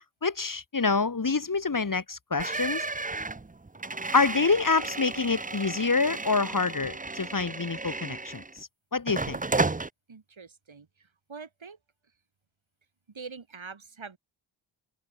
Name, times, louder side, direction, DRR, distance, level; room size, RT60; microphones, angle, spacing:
voice 1, 0.2-2.8 4.1-8.4 8.9-9.4, left 4 dB, 40° left, 1.6 m, -26 dB
sound 1, 2.4-8.6 9.1-9.9, right 3 dB, 15° right, 0.7 m, -33 dB
voice 2, 10.1-11.8 13.1-14.2, right 5 dB, 70° right, 5.0 m, -44 dB
wide cardioid pair, 80°, 48 cm